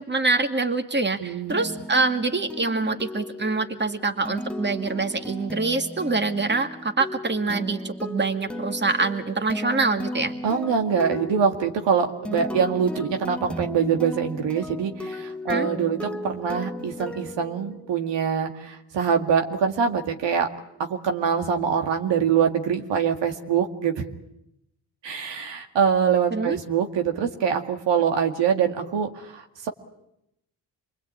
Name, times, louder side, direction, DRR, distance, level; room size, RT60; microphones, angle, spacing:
voice 1, 0.0-10.3 15.5-15.7 26.3-26.6, right 3 dB, 25° right, 7 dB, 2.2 m, -25 dB
voice 2, 1.2-1.8 10.4-20.5 20.8-24.1 25.0-29.7, right 7 dB, 80° right, 5 dB, 2.2 m, -24 dB
sound 1, 1.5-18.2, left 1 dB, 5° left, 1.0 m, -36 dB
27.0 x 21.0 x 8.8 m, 0.82 s
cardioid pair, 75°, 42 cm